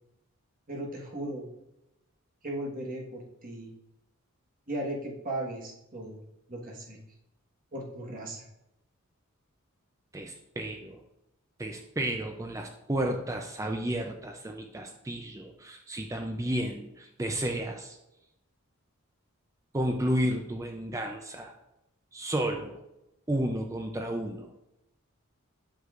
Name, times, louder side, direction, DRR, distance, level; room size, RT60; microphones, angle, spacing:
voice 1, 0.7-1.5 2.4-3.7 4.7-6.2 6.5-7.0 7.7-8.4, right 1 dB, 40° right, -1 dB, 1.3 m, -37 dB
voice 2, 10.1-11.0 11.6-18.0 19.7-21.5 22.1-22.8 23.3-24.5, right 1 dB, 15° right, 3 dB, 0.4 m, -32 dB
8.0 x 6.1 x 2.5 m, 0.87 s
head